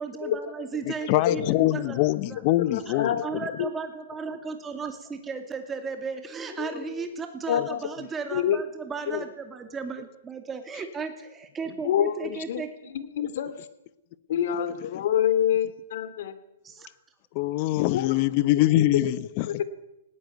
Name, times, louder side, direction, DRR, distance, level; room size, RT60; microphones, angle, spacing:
voice 1, 0.0-2.4 2.7-12.9 16.6-16.9 17.8-18.2, right 5 dB, 10° right, 7 dB, 2.6 m, -36 dB
voice 2, 1.1-3.5 7.6-7.7 14.9-15.0 17.3-19.6, left 16 dB, 35° left, 18 dB, 0.9 m, -24 dB
voice 3, 2.7-3.2 3.6-3.7 6.6-6.7 7.5-7.8 8.3-8.6 9.1-9.2 11.8-12.6 12.9-13.5 14.3-16.3 17.9-18.2 19.5-19.7, left 10 dB, 55° left, 13 dB, 2.5 m, -26 dB
19.0 x 17.5 x 9.3 m, 0.91 s
hypercardioid pair, 160°, 0 cm